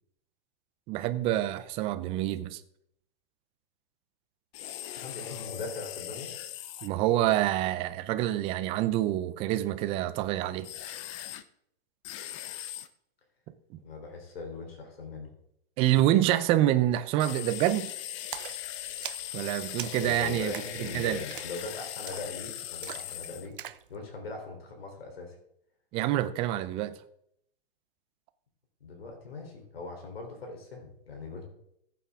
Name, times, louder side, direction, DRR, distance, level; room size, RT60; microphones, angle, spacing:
voice 1, 0.9-2.6 6.8-10.7 15.8-17.9 19.3-20.5 20.8-21.2 25.9-26.9, right 13 dB, 20° right, 0.5 m, -27 dB
sound 1, 4.5-6.9 10.6-11.4 12.0-12.9 17.2-23.5, left 12 dB, 30° left, 0.7 m, -39 dB
voice 2, 4.9-6.3 13.8-15.3 19.8-23.6 23.9-25.4 28.8-31.4, left 4 dB, 85° left, 3.7 m, -40 dB
Splash splatter, 18.3-23.9, right 12 dB, 65° right, 0.7 m, -44 dB
15.0 x 8.5 x 3.6 m
hypercardioid pair, 145°, 29 cm